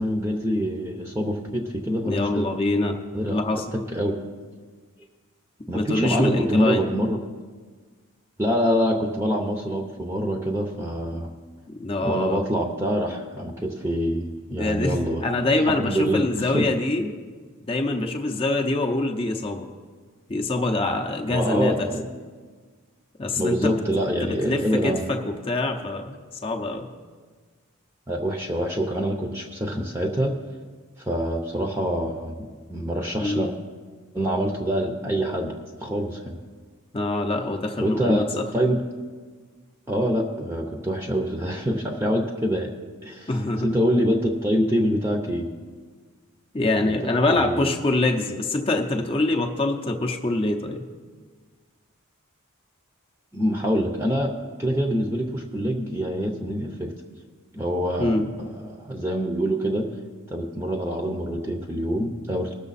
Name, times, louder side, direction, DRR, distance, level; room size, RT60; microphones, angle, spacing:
voice 1, 0.0-2.5 3.1-3.4 3.7-4.2 5.7-7.2 8.4-11.3 12.0-15.2 15.8-16.2 16.5-16.7 21.3-22.1 23.4-25.1 28.1-30.3 31.0-33.5 34.1-35.5 35.8-36.3 37.8-38.8 39.9-42.7 43.0-43.3 43.6-45.5 46.8-47.7 53.3-54.3 54.6-56.9 57.5-59.8 60.3-62.5, equal, 10° right, 2 dB, 0.7 m, -25 dB
voice 2, 2.0-3.0 3.2-3.6 5.7-6.9 11.8-12.4 14.6-17.1 17.6-19.7 20.3-21.9 23.2-23.8 24.2-26.9 33.2-33.5 36.9-38.7 43.3-43.7 46.5-50.8 58.0-58.3, left 2 dB, 25° left, 2 dB, 0.7 m, -25 dB
20.0 x 6.8 x 4.1 m, 1.5 s
head